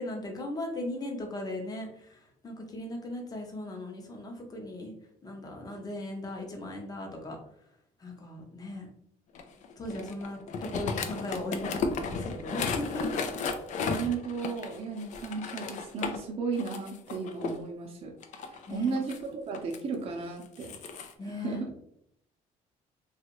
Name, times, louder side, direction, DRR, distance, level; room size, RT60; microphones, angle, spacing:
voice 1, 0.0-4.9 5.2-7.4 8.0-8.9 9.8-13.2 18.7-19.0 21.2-21.6, left 1 dB, 25° left, 2 dB, 0.8 m, -38 dB
sound 1, 9.4-16.2 16.5-17.6 18.2-19.8 20.4-21.1, left 4 dB, 55° left, 0.4 m, -34 dB
voice 2, 13.9-20.8 21.2-21.7, right 5 dB, 40° right, 1 dB, 0.6 m, -35 dB
2.9 x 2.4 x 2.9 m, 0.71 s
cardioid pair, 120°, 15 cm